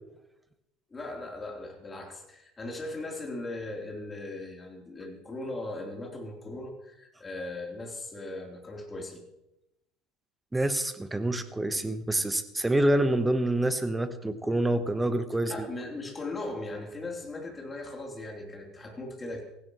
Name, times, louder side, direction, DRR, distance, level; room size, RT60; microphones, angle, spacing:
voice 1, 0.9-9.2 15.4-19.4, left 2 dB, 20° left, 0 dB, 3.5 m, -38 dB
voice 2, 10.5-15.5, right 1 dB, 10° right, 11 dB, 1.2 m, -27 dB
16.5 x 16.0 x 3.1 m, 0.88 s
figure-of-eight pair, 65°, 0 cm